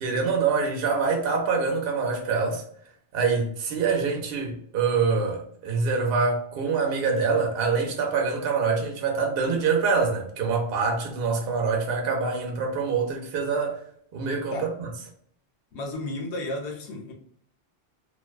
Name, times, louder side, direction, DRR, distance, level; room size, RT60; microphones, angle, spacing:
voice 1, 0.0-2.6 3.1-13.8 14.1-14.9, right 5 dB, 60° right, 0.8 m, -25 dB
voice 2, 15.7-17.1, left 2 dB, 70° left, 1.0 m, -33 dB
2.5 x 2.1 x 2.3 m
omnidirectional pair, 1.2 m